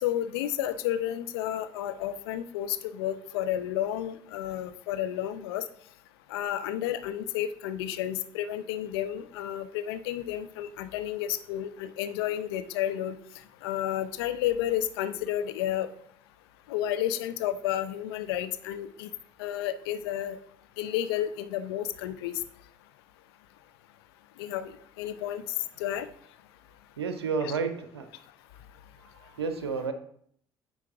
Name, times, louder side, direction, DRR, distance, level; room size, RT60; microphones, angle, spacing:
voice 1, 0.0-5.6 6.3-13.2 13.6-15.9 16.7-19.1 19.4-20.4 20.8-22.4 24.4-25.4 25.8-26.1 27.4-27.5, left 11 dB, 70° left, 12 dB, 0.4 m, -31 dB
voice 2, 27.0-28.1 29.1-29.9, right 5 dB, 80° right, 9 dB, 0.5 m, -31 dB
9.2 x 4.6 x 2.9 m, 0.64 s
figure-of-eight pair, 45°, 13 cm